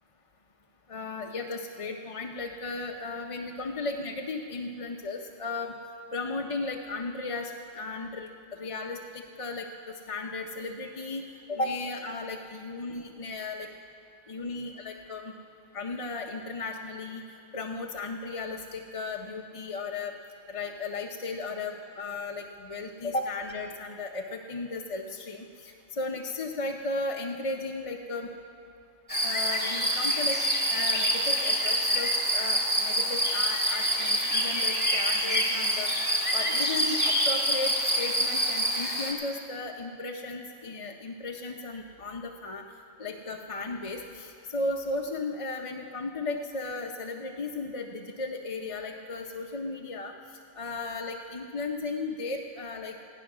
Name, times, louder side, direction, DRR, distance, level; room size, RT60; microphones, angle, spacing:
voice 1, 0.9-5.7 6.1-13.7 14.3-15.3 15.7-17.2 17.5-20.1 20.5-28.3 29.2-30.4 30.7-35.9 36.3-42.6 43.0-50.1 50.6-53.1, left 3 dB, 35° left, 2 dB, 0.6 m, -35 dB
sound 1, 29.1-39.1, equal, 10° left, 1.8 m, -26 dB
15.5 x 11.5 x 6.0 m, 2.5 s
omnidirectional pair, 1.2 m